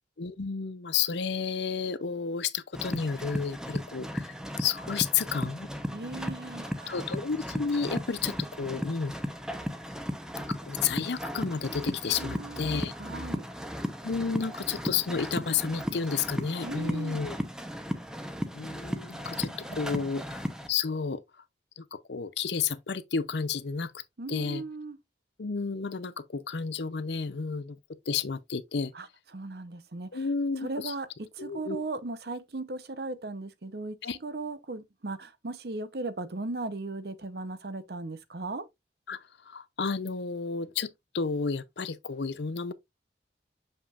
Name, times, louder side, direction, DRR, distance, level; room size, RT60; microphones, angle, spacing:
voice 1, 0.2-5.7 6.9-9.1 10.7-12.9 14.0-17.4 18.5-21.2 21.8-23.9 24.3-24.6 25.4-27.8 28.1-28.9 30.1-30.9 31.4-31.8 34.0-34.2 39.1-39.2 39.5-40.9 41.1-42.7, left 5 dB, 75° left, 0.6 m, -31 dB
sound 1, 2.7-20.7, equal, 5° right, 0.8 m, -36 dB
voice 2, 5.9-7.1 12.1-13.5 16.6-17.2 19.2-20.1 24.2-25.0 28.9-30.3 30.6-31.1 31.4-34.0 34.2-38.6, right 2 dB, 60° right, 0.8 m, -37 dB
6.8 x 5.6 x 2.5 m
head